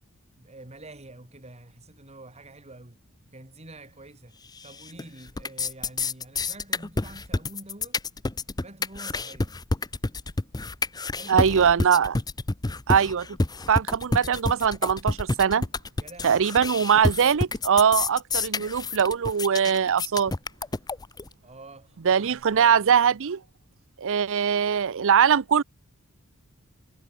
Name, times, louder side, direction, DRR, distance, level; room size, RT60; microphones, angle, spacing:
voice 1, 0.4-3.0 3.3-4.3 4.6-8.0 8.6-9.5 11.1-11.8 16.0-16.5 21.4-22.8, right 2 dB, 30° right, 3.9 m, -47 dB
sound 1, 4.6-5.0 5.3-21.3, left 3 dB, 20° left, 0.7 m, -28 dB
voice 2, 11.3-12.2 12.9-13.3 13.7-15.6 16.2-20.3 22.0-23.4 24.0-25.6, right 7 dB, 65° right, 0.6 m, -21 dB
head